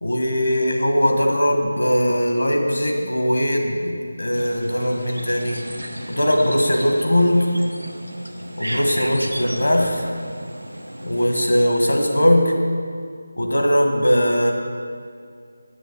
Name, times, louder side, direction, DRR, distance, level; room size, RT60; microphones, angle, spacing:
voice 1, 0.0-5.6 6.1-7.5 8.6-10.0 11.0-12.5 13.4-14.5, equal, 65° left, 2 dB, 1.5 m, -20 dB
sound 1, 4.3-12.1, equal, 85° right, 0.9 m, -34 dB
7.5 x 6.6 x 6.9 m, 2.2 s
figure-of-eight pair, 160°, 0 cm